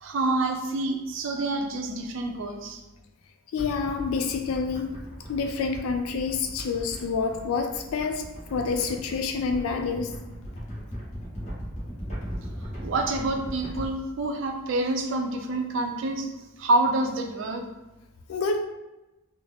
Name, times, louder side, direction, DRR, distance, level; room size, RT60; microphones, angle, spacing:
voice 1, 0.0-2.8 12.8-16.3 16.6-17.6, right 2 dB, 60° right, 3 dB, 0.4 m, -27 dB
voice 2, 3.5-4.9 5.3-8.2 8.5-10.1 18.3-18.6, left 5 dB, 85° left, 4 dB, 0.3 m, -28 dB
sound 1, 3.6-13.9, equal, 35° left, 1.1 m, -38 dB
3.5 x 2.0 x 3.4 m, 1.0 s
head